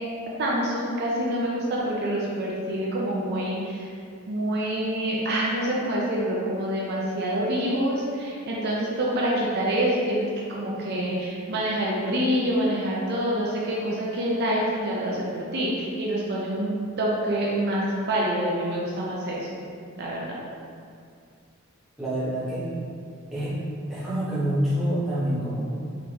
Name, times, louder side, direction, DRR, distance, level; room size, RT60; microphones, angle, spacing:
voice 1, 0.4-3.9 4.3-19.6 20.0-20.4, right 1 dB, 50° right, -4 dB, 0.5 m, -26 dB
voice 2, 22.0-22.7 23.3-23.6 23.9-25.6, equal, ahead, -11 dB, 1.0 m, -26 dB
3.8 x 3.3 x 2.9 m, 2.3 s
head